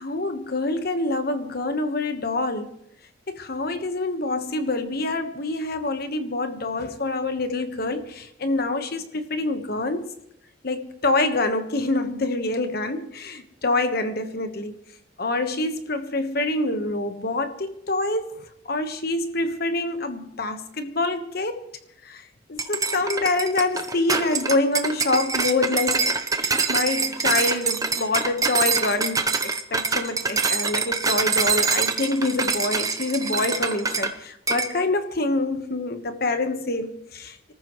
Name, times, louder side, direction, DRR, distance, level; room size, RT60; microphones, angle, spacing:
voice 1, 0.0-2.7 3.3-10.1 10.6-14.8 15.2-21.6 22.0-22.2 22.5-37.5, left 2 dB, 55° left, 1.3 m, -26 dB
sound 1, 22.6-34.1 34.5-34.7, right 4 dB, 20° right, 0.8 m, -25 dB
25.5 x 14.0 x 3.2 m
head